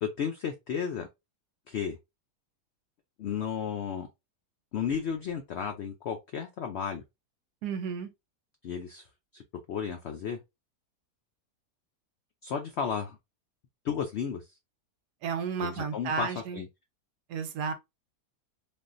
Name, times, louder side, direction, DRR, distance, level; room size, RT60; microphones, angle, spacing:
voice 1, 0.0-1.1 1.7-2.0 3.2-4.1 4.7-7.0 8.6-9.1 9.3-9.4 9.7-10.4 12.4-13.2 13.8-14.4 15.6-16.7, left 7 dB, 85° left, 0.5 m, -33 dB
voice 2, 7.6-8.1 15.2-16.6 17.3-17.7, right 6 dB, 80° right, 1.2 m, -32 dB
3.5 x 2.4 x 2.5 m
omnidirectional pair, 1.7 m